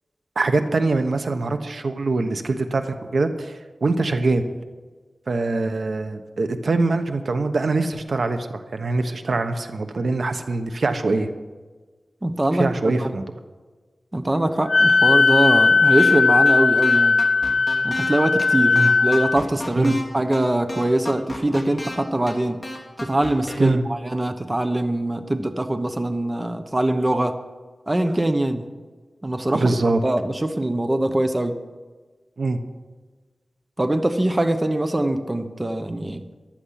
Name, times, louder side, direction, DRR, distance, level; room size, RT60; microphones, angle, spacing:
voice 1, 0.4-4.4 5.3-11.3 12.5-13.2 18.7-18.9 19.8-19.9 23.6-23.8 29.5-30.0 32.4-32.6, right 3 dB, 70° right, 8 dB, 1.1 m, -23 dB
voice 2, 12.2-12.7 13.0-13.1 14.1-17.2 17.8-22.6 23.0-27.4 27.9-28.7 29.2-29.7 30.0-31.6 33.8-36.2, right 1 dB, 25° right, 8 dB, 0.9 m, -22 dB
Wind instrument woodwind instrument, 14.7-19.4, left 4 dB, 70° left, 1.0 m, -17 dB
sound 1, 16.0-16.2 16.4-16.5 16.8-18.1 18.4-18.5 18.7-20.0 20.3-20.4 20.7-22.0 22.3-22.4 22.6-23.6, left 1 dB, 25° left, 2.9 m, -32 dB
15.0 x 11.5 x 5.8 m, 1.4 s
wide cardioid pair, 100°, 0 cm